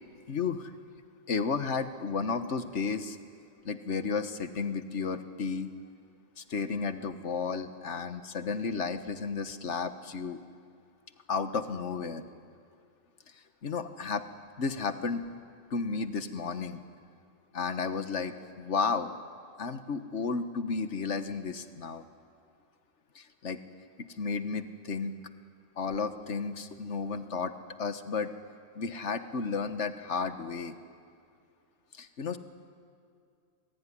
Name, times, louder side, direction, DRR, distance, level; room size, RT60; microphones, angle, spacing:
voice 1, 0.3-0.7 1.3-3.2 3.6-5.7 6.4-10.4 11.3-12.2 13.6-14.3 14.6-15.2 15.7-16.8 17.5-19.1 19.6-22.0 23.1-23.6 24.0-25.1 25.8-27.5 27.8-28.3 28.7-30.7 31.9-32.4, left 5 dB, 70° left, 10 dB, 1.6 m, -33 dB
27.5 x 21.5 x 10.0 m, 2.3 s
omnidirectional pair, 1.3 m